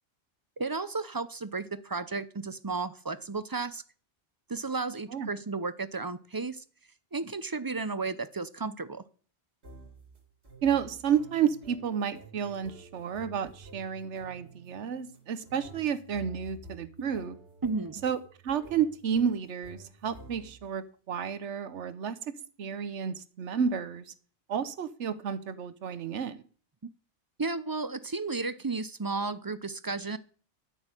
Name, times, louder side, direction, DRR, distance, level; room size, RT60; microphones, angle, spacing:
voice 1, 0.6-3.8 4.5-6.6 7.1-9.0 17.6-18.0 27.4-30.2, right 3 dB, 25° right, 14 dB, 0.5 m, -33 dB
sound 1, 9.6-20.8, right 2 dB, 65° right, 3.1 m, -51 dB
voice 2, 10.6-17.4 18.0-18.2 18.4-22.3 22.6-24.1 24.5-26.4, right 7 dB, 85° right, 14 dB, 1.2 m, -31 dB
12.5 x 6.4 x 9.0 m, 0.43 s
omnidirectional pair, 1.2 m